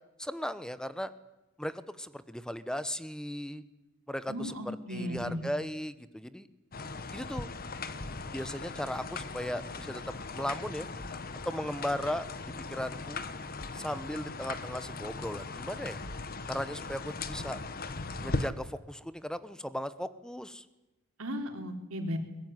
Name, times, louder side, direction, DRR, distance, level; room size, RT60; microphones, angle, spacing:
voice 1, 0.2-1.1 1.6-3.6 4.1-4.6 4.9-6.5 7.1-7.5 8.3-10.9 11.4-13.2 13.7-16.0 16.5-17.6 18.2-20.6, equal, 5° left, 13 dB, 1.1 m, -37 dB
voice 2, 4.3-5.5 21.2-22.2, equal, 90° right, 4 dB, 4.0 m, -36 dB
sound 1, 6.7-18.5, left 3 dB, 45° left, 1.3 m, -39 dB
23.0 x 21.0 x 9.7 m, 0.98 s
head